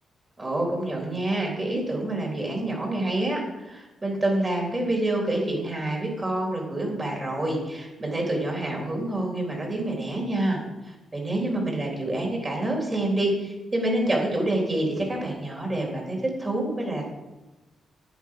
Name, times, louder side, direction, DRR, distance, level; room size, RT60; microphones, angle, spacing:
voice 1, 0.4-10.6 10.9-17.1, right 1 dB, 25° right, 0 dB, 3.8 m, -27 dB
10.5 x 9.6 x 4.8 m, 1.1 s
cardioid pair, 100°, 0 cm